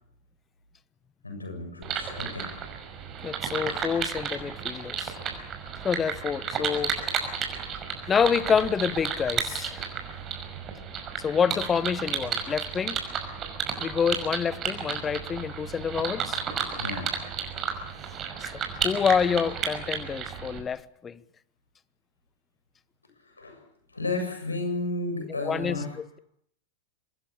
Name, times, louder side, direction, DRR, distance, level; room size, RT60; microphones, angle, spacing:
voice 1, 1.2-2.5 16.8-17.1 23.4-23.6 23.9-25.9, left 2 dB, 80° left, 7.3 m, -32 dB
sound 1, 1.8-20.6, right 7 dB, 30° right, 5.5 m, -33 dB
voice 2, 3.2-5.2 5.8-7.0 8.1-9.9 11.2-13.0 13.8-16.4 18.4-21.2 25.4-26.2, left 7 dB, 20° left, 1.1 m, -27 dB
25.5 x 20.0 x 8.5 m
figure-of-eight pair, 90°, 0 cm